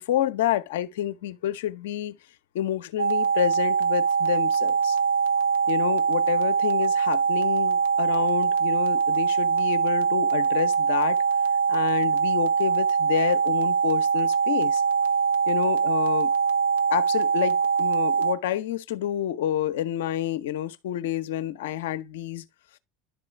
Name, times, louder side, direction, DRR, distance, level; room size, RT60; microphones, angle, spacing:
voice 1, 0.0-2.2 2.5-5.0 5.7-11.2 11.7-14.8 15.5-16.3 16.9-22.4, left 11 dB, 75° left, 0.7 m, -29 dB
sound 1, 3.0-18.3, right 6 dB, 80° right, 0.7 m, -23 dB
11.5 x 3.8 x 3.3 m
hypercardioid pair, 80°, 0 cm